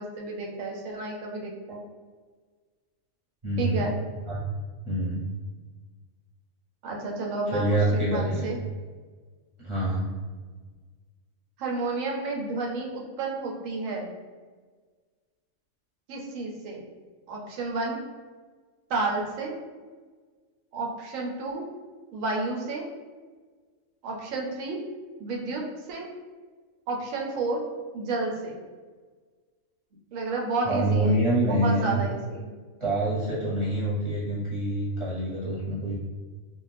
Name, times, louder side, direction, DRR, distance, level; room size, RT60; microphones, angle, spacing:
voice 1, 0.0-1.8 3.6-3.9 6.8-8.6 11.6-14.1 16.1-16.8 17.3-18.0 18.9-19.5 20.7-21.6 22.1-22.8 24.0-24.8 25.2-25.6 25.9-26.1 26.9-27.6 27.9-28.6 30.1-32.5, right 3 dB, 75° right, -1 dB, 1.0 m, -31 dB
voice 2, 3.4-3.9 4.2-4.4 4.8-5.3 7.5-8.5 9.6-10.1 30.6-32.0 32.8-36.0, right 1 dB, 25° right, -10 dB, 0.8 m, -26 dB
2.5 x 2.2 x 3.2 m, 1.5 s
omnidirectional pair, 1.4 m